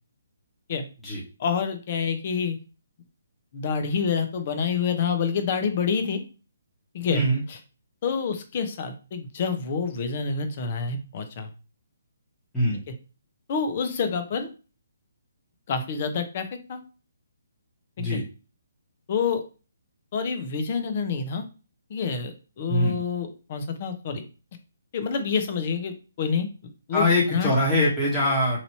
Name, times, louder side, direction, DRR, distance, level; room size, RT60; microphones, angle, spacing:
voice 1, 1.4-2.6 3.5-6.2 6.9-7.2 8.0-11.5 13.5-14.5 15.7-16.8 18.0-18.2 19.1-19.4 20.1-21.4 21.9-24.2 24.9-26.5 26.9-27.0 27.3-27.5, left 5 dB, 40° left, 8 dB, 0.8 m, -27 dB
voice 2, 7.1-7.4 12.5-12.8 18.0-18.2 22.7-23.0 26.9-28.6, left 1 dB, 5° left, -9 dB, 1.2 m, -23 dB
3.0 x 2.7 x 4.3 m, 0.33 s
hypercardioid pair, 150°, 0 cm